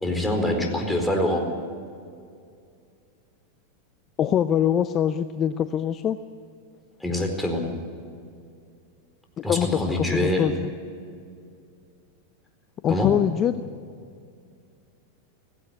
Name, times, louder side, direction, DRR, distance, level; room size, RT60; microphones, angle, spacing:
voice 1, 0.0-1.4 7.0-7.7 9.4-10.5 12.9-13.1, left 1 dB, 5° left, 2 dB, 4.4 m, -25 dB
voice 2, 4.2-6.2 9.4-10.7 12.8-13.6, left 9 dB, 35° left, 11 dB, 0.7 m, -23 dB
17.5 x 16.0 x 9.4 m, 2.3 s
hypercardioid pair, 100°, 0 cm